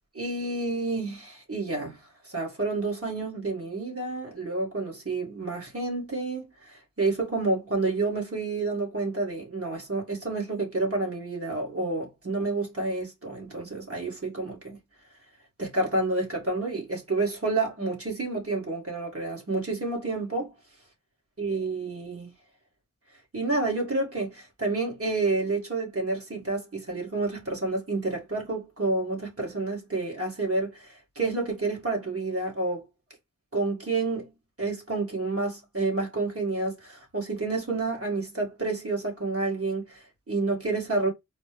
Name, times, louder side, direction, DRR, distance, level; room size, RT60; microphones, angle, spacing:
voice 1, 0.1-2.0 2.2-14.8 15.6-20.5 21.4-22.3 23.3-32.8 33.5-34.3 34.6-41.1, right 3 dB, 45° right, 2.0 m, -29 dB
4.2 x 2.3 x 3.3 m
wide cardioid pair, 75°, 31 cm